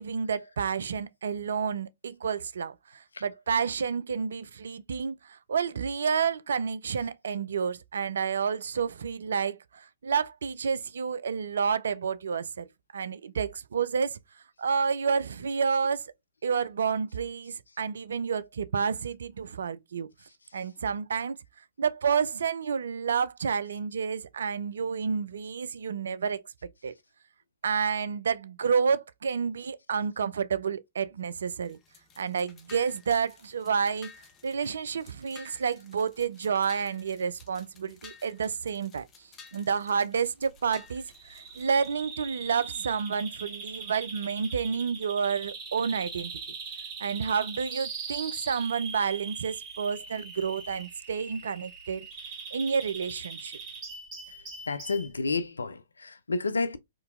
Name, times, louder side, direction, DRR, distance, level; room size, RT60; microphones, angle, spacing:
voice 1, 0.0-12.7 12.9-14.2 14.6-16.0 16.4-20.1 20.5-21.4 21.8-26.4 26.8-26.9 27.6-31.8 32.2-34.1 34.4-39.1 39.5-46.3 47.0-52.1 52.5-53.6, right 6 dB, 70° right, 0.3 m, -30 dB
sound 1, 31.6-42.0, left 6 dB, 25° left, 0.8 m, -54 dB
Bird vocalization bird call bird song, 41.1-55.1, right 5 dB, 25° right, 1.9 m, -41 dB
voice 2, 54.7-56.8, left 3 dB, 80° left, 0.4 m, -30 dB
3.7 x 2.7 x 2.4 m
figure-of-eight pair, 115°, 0 cm